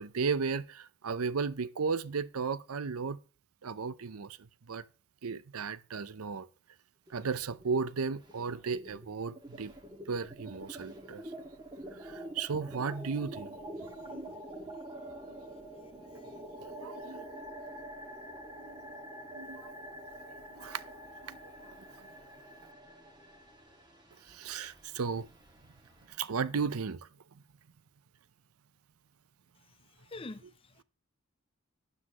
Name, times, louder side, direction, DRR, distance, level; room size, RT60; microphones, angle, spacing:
voice 1, 0.0-3.2 3.6-4.4 4.7-4.8 5.2-6.5 7.1-9.7 10.1-11.2 11.9-14.4 16.6-17.2 18.6-19.0 19.3-19.7 20.2-20.9 21.2-21.8 24.3-25.3 26.1-27.1, right 5 dB, 85° right, 0.6 m, -35 dB
sound 1, 7.1-7.9 8.1-26.2, right 1 dB, 20° right, 1.8 m, -47 dB
voice 2, 30.0-30.8, left 2 dB, 25° left, 0.4 m, -46 dB
12.0 x 9.8 x 3.0 m
head